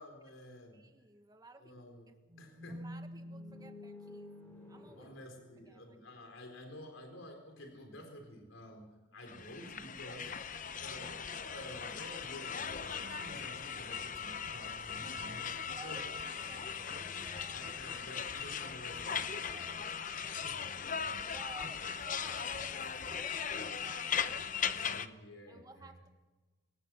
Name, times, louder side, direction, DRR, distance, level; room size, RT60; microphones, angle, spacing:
voice 1, 0.0-0.8 1.6-2.1 2.4-2.8 5.0-10.3 10.8-15.6 15.8-16.0 16.8-16.9 17.5-19.9 20.4-20.6 21.0-21.2 21.6-21.7 24.8-26.1, left 1 dB, 75° left, 3 dB, 4.0 m, -51 dB
voice 2, 0.7-2.1 2.7-4.3 4.7-5.1 5.6-6.2 15.8-17.7 19.5-20.4 21.2-24.7 25.5-26.1, right 2 dB, 20° right, 6 dB, 1.7 m, -56 dB
sound 1, 2.3-6.4, equal, 10° left, 6.2 m, -49 dB
sound 2, 9.3-25.1, left 7 dB, 40° left, 0.8 m, -39 dB
23.5 x 19.0 x 6.2 m, 1.2 s
head